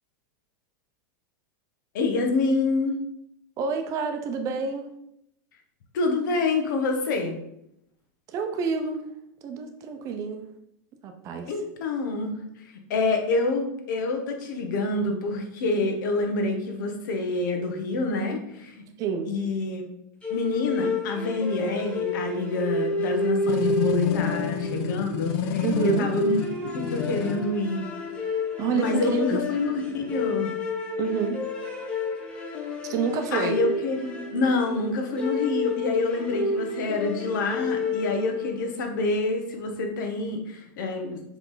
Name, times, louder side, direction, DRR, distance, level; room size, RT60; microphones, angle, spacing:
voice 1, 1.9-3.0 5.9-7.4 11.5-18.8 19.3-19.9 20.3-26.4 26.7-27.8 28.7-30.5 33.3-41.2, left 3 dB, 70° left, 4 dB, 1.3 m, -27 dB
voice 2, 3.6-4.9 8.3-9.1 9.4-10.4 11.0-11.5 19.0-19.4 25.6-26.1 28.6-29.4 31.0-31.4 32.9-33.6, right 6 dB, 30° right, 5 dB, 0.7 m, -28 dB
sound 1, 20.2-38.7, left 2 dB, 10° left, 1.0 m, -30 dB
sound 2, 23.5-27.5, left 8 dB, 45° left, 0.4 m, -29 dB
6.9 x 3.5 x 4.0 m, 0.78 s
supercardioid pair, 155°, 11 cm